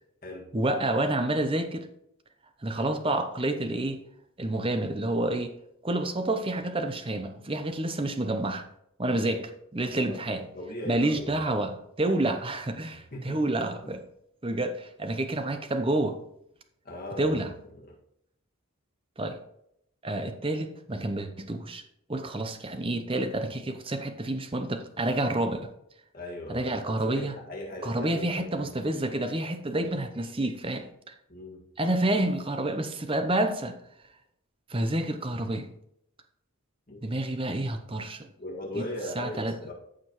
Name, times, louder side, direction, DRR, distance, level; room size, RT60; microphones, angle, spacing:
voice 1, 0.5-1.9 2.6-4.0 4.4-5.6 5.8-8.6 9.0-10.4 10.9-14.0 14.4-16.2 17.2-17.5 19.2-19.4 20.0-21.8 22.1-25.7 26.5-27.3 27.8-31.1 31.8-33.8 34.7-35.7 37.0-38.3 38.8-38.9 39.2-39.5, right 1 dB, 25° right, 0.7 m, -29 dB
voice 2, 10.1-11.4 13.1-13.6 13.8-13.9 16.8-18.0 26.1-28.7 31.3-31.6 36.9-37.2 38.4-39.7, left 1 dB, 40° left, 2.0 m, -39 dB
14.5 x 5.0 x 3.1 m
head